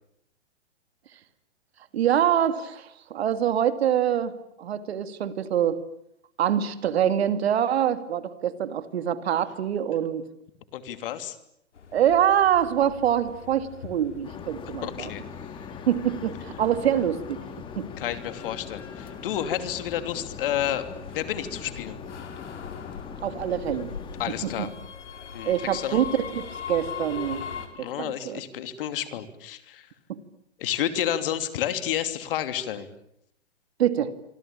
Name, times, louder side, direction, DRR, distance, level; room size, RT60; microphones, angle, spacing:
voice 1, 1.9-4.3 4.6-5.8 6.4-10.3 11.9-15.1 15.9-17.4 17.8-17.9 23.2-23.9 24.4-24.7 25.4-27.4 27.8-28.4 30.1-30.2 33.8-34.1, right 10 dB, 60° right, 11 dB, 2.5 m, -25 dB
voice 2, 10.7-11.4 14.8-15.2 18.0-20.9 21.1-22.0 24.2-24.7 25.3-26.0 27.7-29.9 30.6-32.9, left 11 dB, 50° left, 10 dB, 3.0 m, -30 dB
sound 1, 11.7-27.7, left 7 dB, 75° left, 5.5 m, -41 dB
sound 2, 14.2-24.6, left 7 dB, 15° left, 2.1 m, -41 dB
27.0 x 25.0 x 8.8 m, 0.75 s
hypercardioid pair, 145°, 36 cm